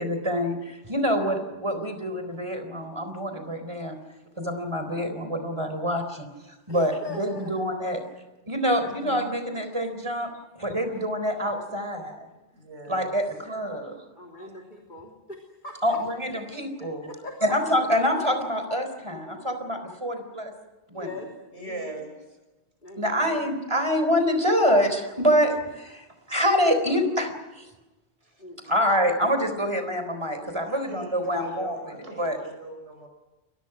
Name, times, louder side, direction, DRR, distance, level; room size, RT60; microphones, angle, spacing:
voice 1, 0.0-4.0 4.4-8.0 8.5-10.3 10.6-12.3 12.9-13.9 14.4-14.5 15.8-17.1 17.4-20.5 20.9-21.1 23.0-27.7 28.7-31.8 32.2-32.4, equal, 25° right, 7 dB, 4.1 m, -26 dB
voice 2, 6.7-7.5 14.2-16.0 16.8-16.9 17.2-17.3 20.9-21.9 22.8-23.5 28.4-28.7, left 2 dB, 45° left, 1 dB, 3.3 m, -41 dB
voice 3, 8.8-9.4 12.5-13.1 21.5-22.4 26.1-26.2 28.2-28.7 30.4-33.1, right 3 dB, 90° right, 5 dB, 6.0 m, -41 dB
30.0 x 23.0 x 6.1 m, 1.1 s
omnidirectional pair, 1.1 m